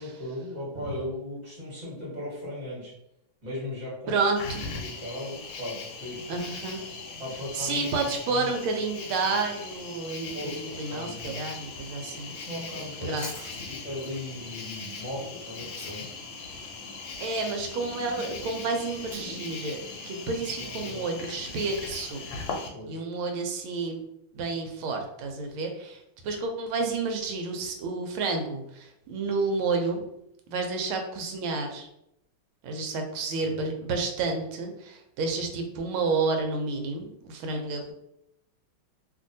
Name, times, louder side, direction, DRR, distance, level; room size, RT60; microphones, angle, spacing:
voice 1, 0.0-2.9 3.4-4.2 4.7-6.2 7.2-7.9 8.3-8.5 10.3-11.4 12.3-13.3 13.7-16.1 20.6-21.0 22.7-23.0 33.4-33.6, left 1 dB, 25° right, -7 dB, 1.1 m, -37 dB
voice 2, 4.1-4.7 6.3-6.8 7.5-12.3 13.0-13.3 17.2-19.8 20.1-24.0 24.3-26.0 26.2-30.0 30.5-31.9 32.6-37.9, right 3 dB, 85° right, 3 dB, 1.4 m, -30 dB
Cricket, 4.4-22.7, left 4 dB, 75° left, 1.2 m, -39 dB
Chewing mastication, 12.9-16.3 16.5-20.9, left 1 dB, 40° left, 1.0 m, -48 dB
3.1 x 2.6 x 2.6 m, 0.80 s
omnidirectional pair, 2.2 m